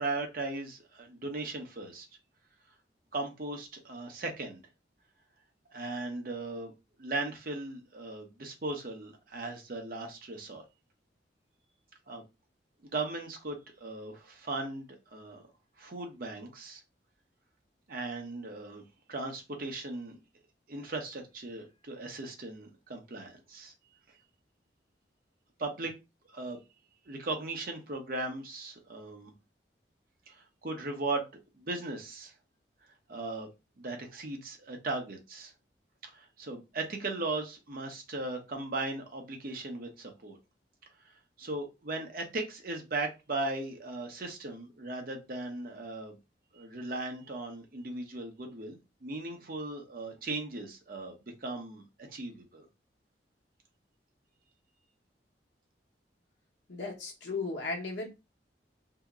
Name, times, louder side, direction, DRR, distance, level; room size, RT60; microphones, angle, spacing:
voice 1, 0.0-2.1 3.1-4.6 5.7-6.7 7.0-10.6 12.1-12.2 12.8-15.4 15.8-16.8 17.9-18.8 19.1-20.2 20.7-23.7 25.6-25.9 26.3-26.6 27.1-29.3 30.3-32.3 33.1-33.5 33.8-35.5 36.1-40.4 41.4-46.2 46.5-52.7, right 2 dB, 55° right, 0.8 m, -37 dB
voice 2, 56.7-58.1, left 3 dB, 85° left, 1.0 m, -35 dB
2.8 x 2.0 x 3.5 m
head